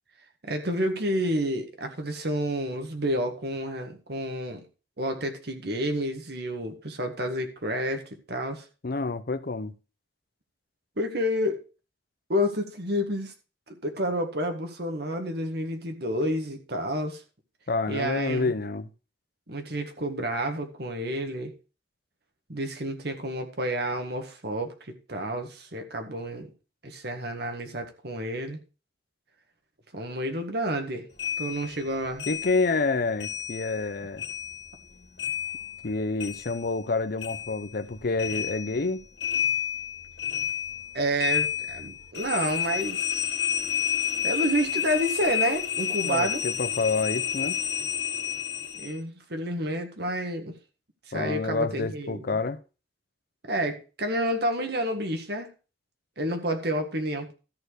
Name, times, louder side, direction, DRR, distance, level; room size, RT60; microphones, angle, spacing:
voice 1, 0.4-4.6 5.0-8.0 8.3-8.6 11.0-11.6 12.3-13.3 13.7-17.2 17.9-18.5 19.5-21.5 22.5-24.7 25.1-26.5 26.8-28.6 29.9-31.1 31.4-32.3 40.9-43.3 44.2-46.4 48.8-50.5 51.1-52.4 53.5-55.5 56.2-57.3, equal, 60° right, 1.8 m, -29 dB
voice 2, 8.8-9.7 17.7-18.9 32.3-34.2 35.8-39.0 46.0-47.6 51.1-52.6, left 3 dB, 55° left, 0.7 m, -28 dB
sound 1, 31.2-33.9 34.2-36.9 37.2-49.0, left 8 dB, 70° left, 2.2 m, -30 dB
13.5 x 4.5 x 6.5 m
head